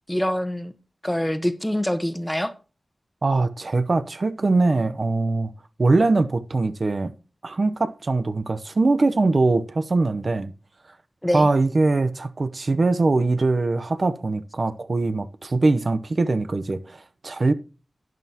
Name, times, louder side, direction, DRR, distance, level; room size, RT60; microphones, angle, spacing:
voice 1, 0.1-0.7 1.0-2.5 11.2-11.5, equal, 5° left, 1.1 m, -25 dB
voice 2, 3.2-5.5 5.8-7.1 7.4-10.5 11.3-17.5, right 3 dB, 55° right, 0.7 m, -22 dB
12.0 x 9.2 x 2.9 m
wide cardioid pair, 80°, 0 cm